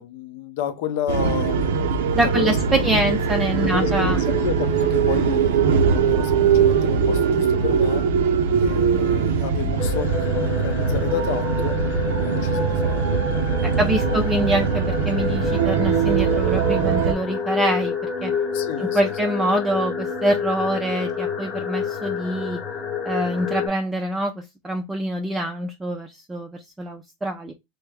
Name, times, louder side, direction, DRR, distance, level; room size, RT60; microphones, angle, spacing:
voice 1, 0.0-2.8 3.6-8.1 8.6-11.8 12.2-13.2 13.4-14.2 18.5-19.1, left 10 dB, 60° left, 0.6 m, -31 dB
sound 1, 1.1-17.1, right 6 dB, 85° right, 0.6 m, -21 dB
voice 2, 2.1-4.2 13.6-17.9 18.2-18.3 18.8-22.6 23.0-27.5, right 1 dB, 10° right, 0.4 m, -25 dB
sound 2, 9.8-23.7, left 4 dB, 20° left, 0.9 m, -28 dB
3.2 x 2.1 x 3.4 m
supercardioid pair, 140°, 0 cm